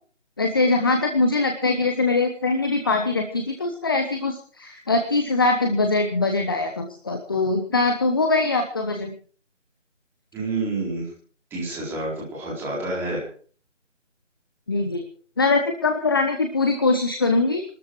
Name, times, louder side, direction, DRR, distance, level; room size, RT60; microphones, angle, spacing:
voice 1, 0.4-9.1 14.7-15.1 15.4-17.6, left 3 dB, 20° left, 5 dB, 1.0 m, -22 dB
voice 2, 10.3-11.1 11.5-13.2, right 2 dB, 5° right, -5 dB, 4.2 m, -28 dB
22.0 x 13.0 x 4.7 m, 0.44 s
figure-of-eight pair, 155°, 37 cm